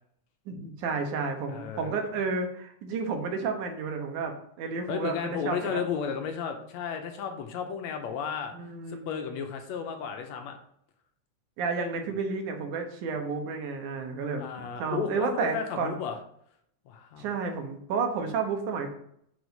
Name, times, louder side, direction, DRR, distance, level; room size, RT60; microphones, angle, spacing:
voice 1, 0.5-5.8 8.5-9.1 11.6-14.4 14.8-15.9 17.2-18.9, right 5 dB, 85° right, 4 dB, 2.6 m, -31 dB
voice 2, 1.5-2.0 4.9-8.5 8.9-10.5 14.4-16.2 16.9-17.3, left 7 dB, 75° left, 5 dB, 2.0 m, -33 dB
6.3 x 4.8 x 5.2 m, 0.69 s
omnidirectional pair, 3.4 m